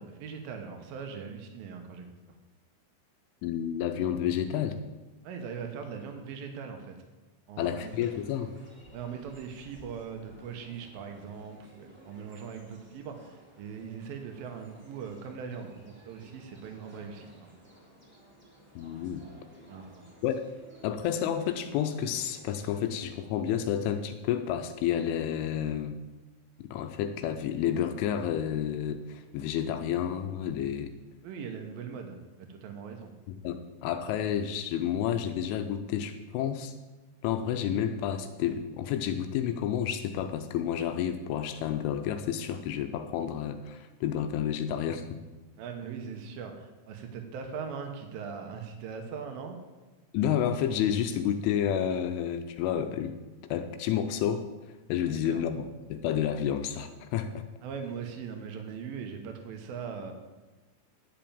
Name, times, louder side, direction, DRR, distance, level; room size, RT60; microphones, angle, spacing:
voice 1, 0.0-2.4 5.2-6.9 7.5-7.9 8.9-17.5 19.7-20.0 31.2-33.1 45.6-49.6 55.1-55.5 57.6-60.1, right 6 dB, 85° right, 5 dB, 2.0 m, -40 dB
voice 2, 3.4-4.8 7.6-8.5 18.8-19.3 20.2-20.3 20.8-26.0 26.6-30.9 33.3-36.7 37.2-45.2 50.1-53.2 53.5-54.5 54.9-57.4, left 9 dB, 85° left, 8 dB, 3.0 m, -30 dB
sound 1, 7.6-23.3, right 1 dB, 25° right, 1.1 m, -55 dB
11.0 x 5.9 x 8.7 m, 1.2 s
omnidirectional pair, 5.8 m